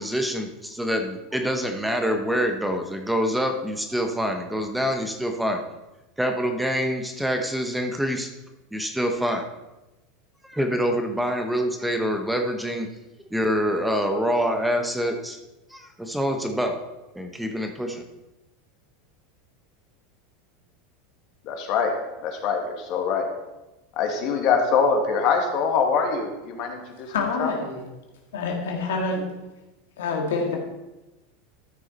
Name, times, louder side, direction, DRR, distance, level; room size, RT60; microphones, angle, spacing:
voice 1, 0.0-5.6 6.2-8.3 8.7-9.4 10.4-12.9 13.3-15.4 15.7-16.8 17.1-18.0, equal, 5° right, 4 dB, 1.1 m, -26 dB
voice 2, 21.4-21.9 22.2-23.3 24.0-27.1 27.4-27.5, left 5 dB, 55° left, 3 dB, 2.1 m, -23 dB
voice 3, 27.1-27.8 28.3-29.3 30.0-30.6, left 3 dB, 85° left, 2 dB, 1.9 m, -27 dB
13.0 x 6.3 x 4.2 m, 1.0 s
hypercardioid pair, 105°, 0 cm